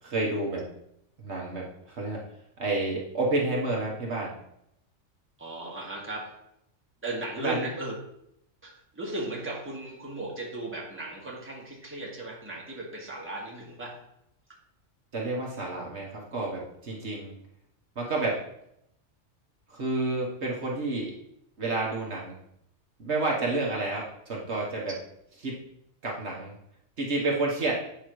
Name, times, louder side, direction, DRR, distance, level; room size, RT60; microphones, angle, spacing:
voice 1, 0.0-0.7 1.2-2.2 2.6-4.4 7.4-7.7 15.1-17.3 17.9-18.4 19.7-21.1 21.6-22.4 23.0-24.9 25.4-25.6 26.0-26.5 27.0-27.8, right 2 dB, 60° right, -3 dB, 1.5 m, -30 dB
voice 2, 5.4-6.4 7.0-7.9 8.6-14.0, right 2 dB, 10° right, -3 dB, 1.6 m, -36 dB
8.5 x 5.6 x 3.1 m, 0.77 s
omnidirectional pair, 1.3 m